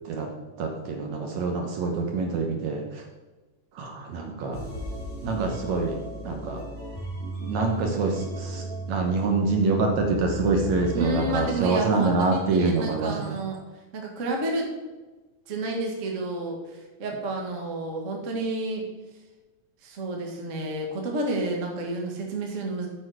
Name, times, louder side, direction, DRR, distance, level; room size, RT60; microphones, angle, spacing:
voice 1, 0.6-3.0 3.8-4.6 5.2-6.0 6.2-6.6 7.4-13.4, right 3 dB, 65° right, 2 dB, 2.0 m, -26 dB
sound 1, 4.5-11.5, equal, 20° left, 2.8 m, -35 dB
voice 2, 10.9-13.6 13.9-14.7 15.5-18.8 19.8-22.9, right 2 dB, 40° right, 0 dB, 1.1 m, -30 dB
9.0 x 6.7 x 4.9 m, 1.2 s
omnidirectional pair, 3.9 m